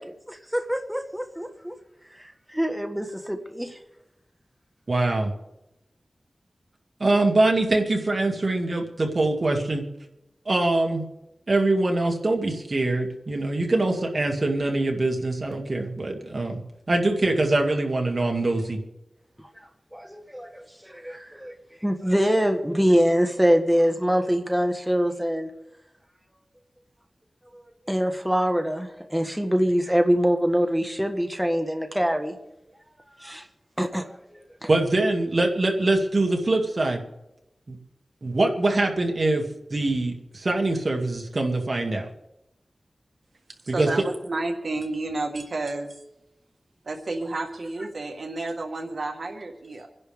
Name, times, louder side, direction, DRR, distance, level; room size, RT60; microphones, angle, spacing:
voice 1, 0.0-1.8 2.1-3.8 19.9-21.5 21.8-25.5 27.5-27.6 27.9-32.3 33.2-33.5 33.8-34.7, equal, 5° right, 5 dB, 1.5 m, -24 dB
voice 2, 4.9-5.3 7.0-9.8 10.5-11.0 11.5-16.6 16.9-18.8 34.7-37.0 37.7-37.8 38.2-39.4 39.7-42.1 43.7-43.9, right 2 dB, 55° right, 2 dB, 2.4 m, -23 dB
voice 3, 43.6-46.0 46.8-49.9, right 2 dB, 70° right, 4 dB, 1.5 m, -31 dB
26.5 x 11.0 x 3.6 m, 0.93 s
wide cardioid pair, 60°, 0 cm